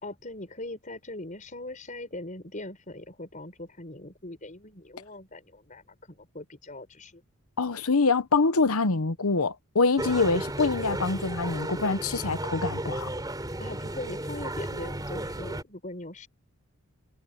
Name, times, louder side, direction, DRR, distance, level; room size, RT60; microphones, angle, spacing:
voice 1, 0.0-7.2 13.6-16.3, left 2 dB, 35° left, 5.0 m, -41 dB
voice 2, 7.6-13.1, left 4 dB, 90° left, 1.0 m, -25 dB
sound 1, 10.0-15.6, right 1 dB, 20° right, 4.5 m, -34 dB
head